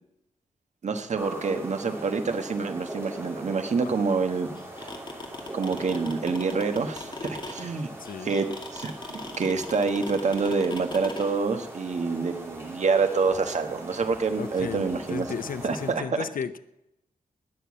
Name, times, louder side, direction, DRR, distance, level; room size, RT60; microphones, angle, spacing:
voice 1, 0.8-4.5 4.8-4.9 5.5-7.9 8.2-8.5 8.7-15.4 15.6-16.2, right 4 dB, 55° right, 7 dB, 1.3 m, -27 dB
sound 1, 1.1-15.9, right 1 dB, 15° right, 3.5 m, -41 dB
sound 2, 4.6-11.3, left 3 dB, 30° left, 2.2 m, -38 dB
voice 2, 8.0-8.3 14.4-16.6, left 7 dB, 75° left, 13 dB, 0.8 m, -35 dB
19.5 x 6.9 x 8.6 m, 0.87 s
wide cardioid pair, 165°, 15 cm